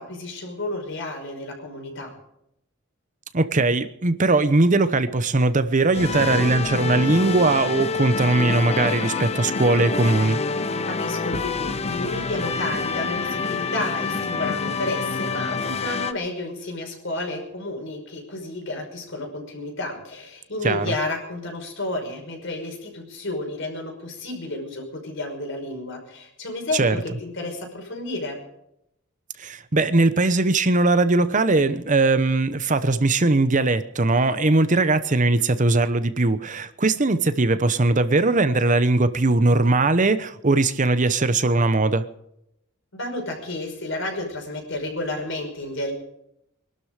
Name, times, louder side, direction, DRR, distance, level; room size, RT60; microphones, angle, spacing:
voice 1, 0.0-2.1 10.9-28.4 42.9-45.9, left 2 dB, 65° left, 3 dB, 5.6 m, -31 dB
voice 2, 3.3-10.4 20.6-20.9 26.7-27.0 29.4-42.1, right 2 dB, 40° right, 12 dB, 0.9 m, -20 dB
sound 1, 5.9-16.1, left 4 dB, 30° left, 1.0 m, -27 dB
23.5 x 12.5 x 5.0 m, 0.79 s
head